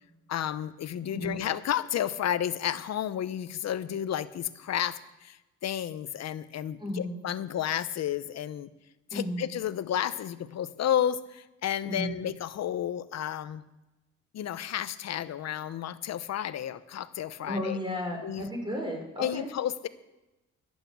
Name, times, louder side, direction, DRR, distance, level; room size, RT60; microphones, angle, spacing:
voice 1, 0.3-8.7 9.1-13.6 14.3-17.8 18.2-18.5 19.2-19.9, left 10 dB, 60° left, 14 dB, 0.9 m, -32 dB
voice 2, 1.1-1.4 6.8-7.2 9.1-9.5 11.8-12.2 17.4-19.5, left 1 dB, 15° right, 0 dB, 5.5 m, -34 dB
11.5 x 8.3 x 8.5 m, 0.99 s
cardioid pair, 90°, 30 cm